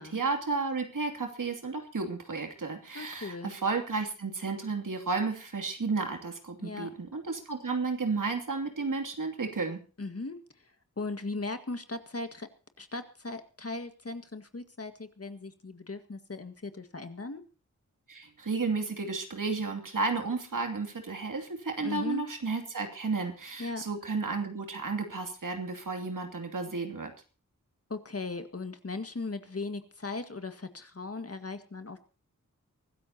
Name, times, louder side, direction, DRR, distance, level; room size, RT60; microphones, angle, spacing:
voice 1, 0.0-9.8 18.1-27.1, right 4 dB, 75° right, 4 dB, 2.7 m, -32 dB
voice 2, 2.9-3.5 6.6-6.9 10.0-10.7 11.0-12.5 12.8-17.4 21.8-22.2 23.6-23.8 27.9-32.0, left 3 dB, 45° left, 8 dB, 1.8 m, -38 dB
23.5 x 13.5 x 2.9 m, 0.36 s
cardioid pair, 45°, 32 cm